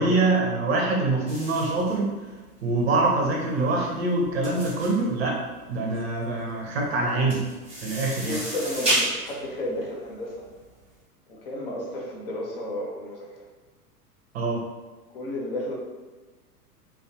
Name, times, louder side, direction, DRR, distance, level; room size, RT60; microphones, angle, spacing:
voice 1, 0.0-2.1 2.6-5.4 5.7-7.4 7.8-8.4 14.3-14.6, right 2 dB, 40° right, -2 dB, 0.6 m, -24 dB
sound 1, 1.3-10.9, right 1 dB, 10° right, 0.9 m, -32 dB
voice 2, 8.1-10.5 11.3-13.4 15.1-15.7, left 1 dB, 40° left, -2 dB, 0.5 m, -32 dB
2.4 x 2.0 x 2.8 m, 1.2 s
figure-of-eight pair, 100°, 47 cm